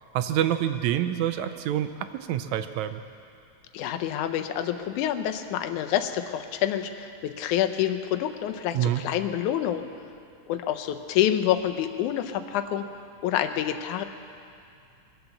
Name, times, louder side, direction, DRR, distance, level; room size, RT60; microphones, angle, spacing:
voice 1, 0.1-3.0 8.7-9.0, right 11 dB, 80° right, 10 dB, 1.9 m, -27 dB
voice 2, 3.7-9.8 10.5-12.9 13.2-14.0, left 11 dB, 85° left, 7 dB, 2.2 m, -27 dB
21.5 x 7.9 x 7.0 m, 2.4 s
omnidirectional pair, 3.5 m